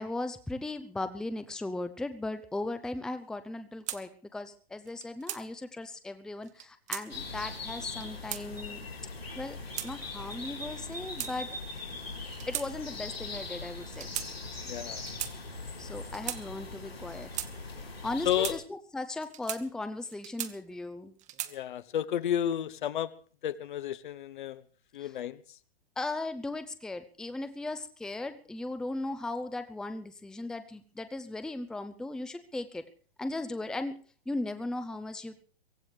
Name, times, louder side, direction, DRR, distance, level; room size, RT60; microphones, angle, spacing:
voice 1, 0.0-8.9 9.4-9.6 9.8-11.5 12.5-14.1 15.8-17.3 18.0-21.1 25.0-25.1 26.0-32.9 33.2-35.4, left 2 dB, ahead, 10 dB, 0.7 m, -37 dB
sound 1, 3.9-4.0 4.9-5.4 6.4-7.1 7.8-8.4 9.3-9.9 10.8-11.7 12.3-12.7 13.0-13.2 13.9-14.3 15.0-15.3 16.0-16.4 17.1-17.5 18.2-18.6 19.2-19.6 20.1-20.8 21.2-21.6, right 12 dB, 25° right, 1.3 m, -38 dB
sound 2, 7.1-18.5, left 3 dB, 85° left, 4.0 m, -41 dB
voice 2, 14.6-15.0 18.2-18.6 21.5-23.1 23.4-24.6 24.9-25.4, left 10 dB, 55° left, 15 dB, 1.2 m, -31 dB
23.5 x 17.0 x 3.3 m, 0.42 s
figure-of-eight pair, 110°, 30 cm